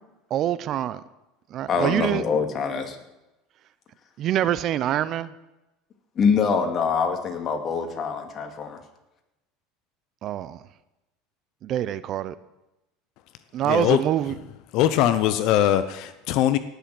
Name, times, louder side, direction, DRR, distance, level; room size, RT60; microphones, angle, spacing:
voice 1, 0.3-1.0 1.5-2.2 4.2-5.3 10.2-10.6 11.6-12.4 13.5-14.3, right 11 dB, 50° right, 0.7 m, -25 dB
voice 2, 1.7-3.0 6.2-8.8, left 5 dB, 40° left, 2.4 m, -24 dB
voice 3, 13.6-14.0 14.7-16.6, left 12 dB, 60° left, 0.8 m, -21 dB
18.0 x 6.9 x 7.7 m
supercardioid pair, 110°, 0 cm